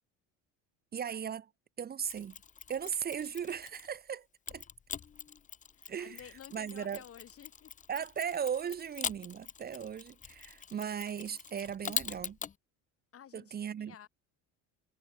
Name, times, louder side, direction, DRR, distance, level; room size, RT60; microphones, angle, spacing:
voice 1, 0.9-1.5 1.8-2.4 2.7-4.6 5.9-6.2 6.5-7.0 7.9-12.4 13.3-13.9, right 8 dB, 25° right, 0.5 m, -37 dB
Mechanisms, 2.0-4.0 4.5-12.5, left 7 dB, 20° left, 0.5 m, -43 dB
voice 2, 5.7-7.7 13.1-14.1, left 9 dB, 40° left, 1.0 m, -52 dB
supercardioid pair, 90°, 37 cm